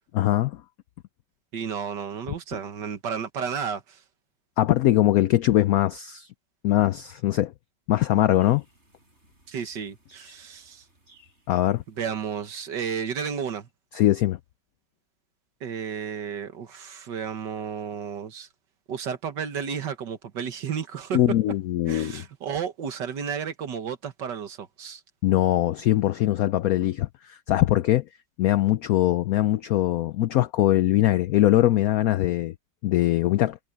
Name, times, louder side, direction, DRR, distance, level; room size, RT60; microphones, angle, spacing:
voice 1, 0.1-0.6 4.6-6.3 6.6-7.5 7.9-8.6 11.5-11.8 13.9-14.4 21.1-22.2 25.2-28.0 28.4-32.5 32.8-33.6, left 14 dB, 90° left, 0.7 m, -22 dB
voice 2, 1.5-4.0 9.5-10.8 12.0-13.7 15.6-18.5 18.9-21.2 21.9-25.0, right 7 dB, 65° right, 2.0 m, -32 dB
sound 1, 8.4-13.7, right 1 dB, 35° right, 7.0 m, -61 dB
omnidirectional pair, 2.1 m